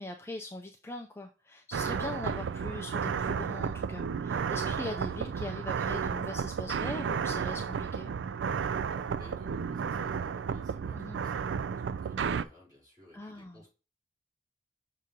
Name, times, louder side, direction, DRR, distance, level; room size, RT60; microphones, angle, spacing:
voice 1, 0.0-8.1 10.9-11.2 13.1-13.6, left 2 dB, 15° left, 3 dB, 0.4 m, -41 dB
sound 1, 1.7-12.4, right 6 dB, 85° right, 0.3 m, -33 dB
voice 2, 8.9-13.7, left 1 dB, 20° right, -5 dB, 3.6 m, -58 dB
6.7 x 2.8 x 5.0 m, 0.32 s
head